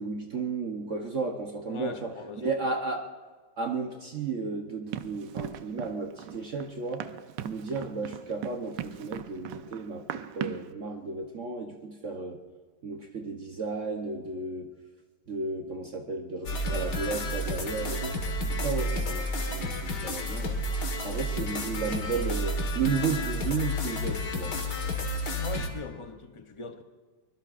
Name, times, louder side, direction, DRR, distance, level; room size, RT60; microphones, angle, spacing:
voice 1, 0.0-2.1 2.4-3.1 3.6-7.1 7.4-12.4 12.8-14.7 15.3-18.1 18.5-19.3 19.5-20.6 21.0-24.6, right 4 dB, 50° right, 3 dB, 1.1 m, -33 dB
voice 2, 1.7-2.5 25.4-26.8, left 5 dB, 30° left, 6 dB, 0.5 m, -40 dB
Run, 4.9-10.7, right 10 dB, 80° right, 1.3 m, -39 dB
sound 1, 16.5-25.7, left 1 dB, 70° left, 2.2 m, -31 dB
24.0 x 21.5 x 2.5 m, 1.4 s
omnidirectional pair, 1.9 m